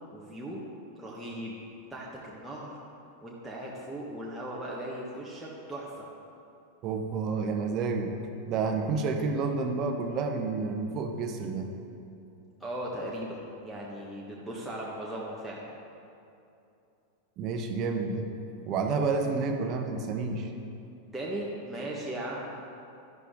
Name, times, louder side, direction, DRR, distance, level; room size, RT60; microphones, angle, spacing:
voice 1, 0.1-0.6 0.9-1.6 1.9-2.8 3.2-6.1 12.6-15.7 21.1-22.6, right 1 dB, ahead, -6 dB, 1.5 m, -38 dB
voice 2, 6.8-8.1 8.5-11.7 17.4-18.3 18.7-20.5, right 4 dB, 35° right, 5 dB, 1.1 m, -30 dB
12.0 x 11.5 x 3.8 m, 2.7 s
figure-of-eight pair, 90°, 0 cm